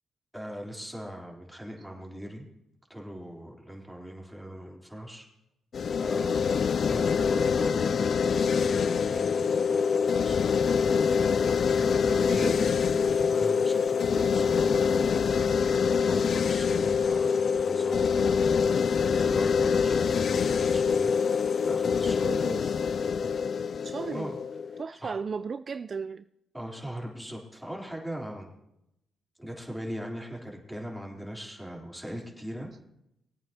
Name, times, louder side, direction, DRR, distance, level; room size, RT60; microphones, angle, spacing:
voice 1, 0.3-2.5 2.9-5.3 6.0-11.0 11.8-14.8 16.1-18.4 19.0-22.3 24.1-24.4 25.0-25.2 26.5-28.5 29.4-32.7, equal, 5° right, -1 dB, 3.5 m, -40 dB
sound 1, 5.7-24.8, left 6 dB, 55° left, 0.3 m, -25 dB
voice 2, 12.0-12.6 22.2-22.8 23.8-24.3 24.8-26.3, right 5 dB, 45° right, 12 dB, 0.4 m, -36 dB
21.0 x 8.7 x 2.9 m, 0.81 s
supercardioid pair, 65°, 0 cm